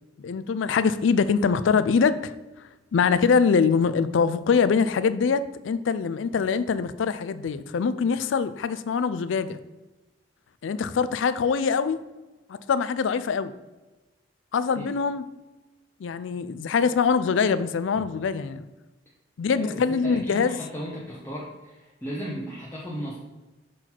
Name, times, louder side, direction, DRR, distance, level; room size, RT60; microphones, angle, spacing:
voice 1, 0.2-2.3 2.9-9.6 10.6-12.0 12.7-13.5 14.5-15.3 16.0-18.7 19.4-20.6, left 5 dB, 75° left, 14 dB, 0.4 m, -23 dB
voice 2, 19.5-23.2, equal, 10° left, -7 dB, 1.0 m, -36 dB
6.2 x 3.9 x 4.4 m, 1.1 s
head